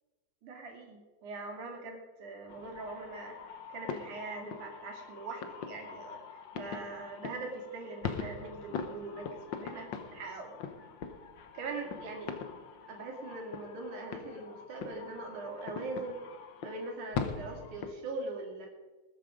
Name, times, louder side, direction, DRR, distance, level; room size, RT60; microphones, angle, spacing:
voice 1, 0.4-10.5 11.5-12.3 12.9-16.2 16.6-18.7, right 3 dB, 75° right, 1 dB, 3.9 m, -42 dB
sound 1, 2.5-17.9, left 6 dB, 75° left, 1.0 m, -42 dB
20.0 x 9.4 x 5.1 m, 1.3 s
omnidirectional pair, 3.5 m